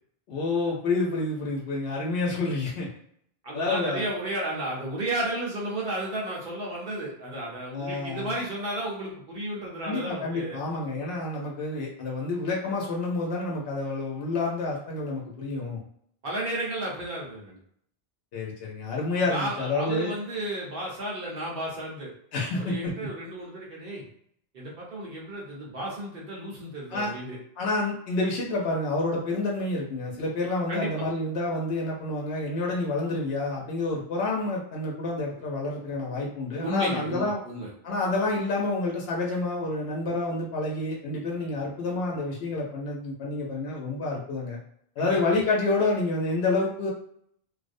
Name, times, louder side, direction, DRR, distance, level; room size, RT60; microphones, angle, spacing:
voice 1, 0.3-2.9 3.5-4.0 7.7-8.3 9.8-15.8 18.3-20.1 22.3-22.9 26.9-27.1 27.6-37.4 37.8-44.6 45.0-46.9, left 2 dB, 80° left, -2 dB, 0.8 m, -28 dB
voice 2, 3.4-10.6 16.2-17.6 19.3-22.1 22.5-24.0 24.5-27.4 30.7-31.1 36.6-37.7 45.0-45.2, right 1 dB, 65° right, -3 dB, 0.9 m, -33 dB
2.4 x 2.0 x 2.5 m, 0.67 s
omnidirectional pair, 1.0 m